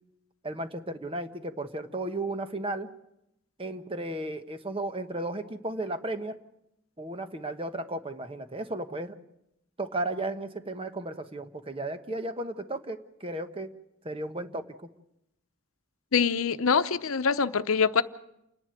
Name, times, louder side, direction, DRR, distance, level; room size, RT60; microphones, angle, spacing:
voice 1, 0.4-2.9 3.6-6.4 7.0-9.2 9.8-13.7 14.0-14.6, right 2 dB, 25° right, 1.1 m, -34 dB
voice 2, 16.1-18.0, left 5 dB, 85° left, 0.8 m, -24 dB
28.5 x 11.0 x 9.0 m
head